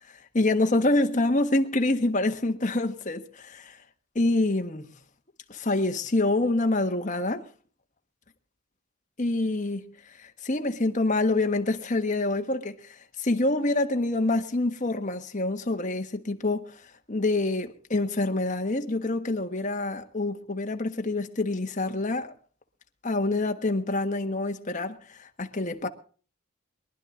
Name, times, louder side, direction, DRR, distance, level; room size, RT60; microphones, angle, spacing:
voice 1, 0.3-3.8 4.1-4.9 5.5-7.5 9.2-9.8 10.2-16.7 17.1-22.3 23.0-25.9, left 2 dB, 40° left, 1.4 m, -26 dB
23.0 x 11.0 x 3.8 m
head